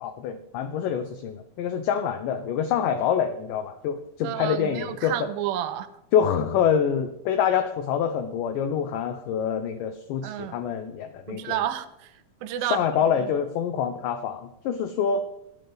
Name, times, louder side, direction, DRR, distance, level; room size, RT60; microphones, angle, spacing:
voice 1, 0.0-5.2 6.1-11.6 12.6-15.2, left 8 dB, 80° left, 8 dB, 2.0 m, -26 dB
voice 2, 4.2-5.9 10.2-10.5 11.3-12.1 12.4-12.8 13.2-13.3, right 12 dB, 90° right, 12 dB, 2.4 m, -30 dB
12.5 x 9.5 x 3.4 m, 0.84 s
omnidirectional pair, 4.2 m